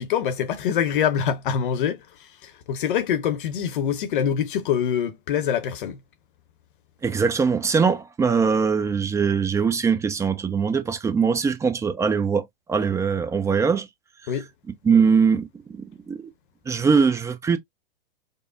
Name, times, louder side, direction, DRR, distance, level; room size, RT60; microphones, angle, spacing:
voice 1, 0.0-6.0 14.3-14.5, left 8 dB, 60° left, 0.8 m, -25 dB
voice 2, 7.0-13.9 14.8-15.5 16.1-16.2 16.7-17.6, right 5 dB, 10° right, 0.5 m, -21 dB
5.2 x 2.0 x 2.5 m
figure-of-eight pair, 105°, 30 cm